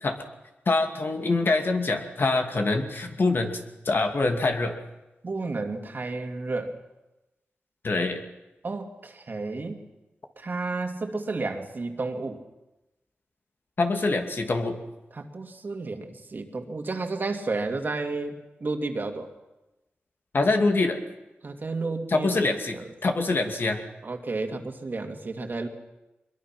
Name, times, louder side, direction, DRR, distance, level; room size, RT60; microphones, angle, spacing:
voice 1, 0.7-3.6 3.9-4.8 7.8-8.2 13.8-14.8 20.3-21.0 22.1-22.8 23.0-23.8, left 3 dB, 60° left, 4 dB, 2.5 m, -24 dB
voice 2, 5.2-6.8 8.6-9.8 10.4-12.4 15.1-19.3 21.4-22.4 22.7-22.9 24.0-25.7, right 3 dB, 50° right, 5 dB, 2.4 m, -32 dB
23.0 x 22.0 x 6.1 m, 1.0 s
cardioid pair, 60°, 4 cm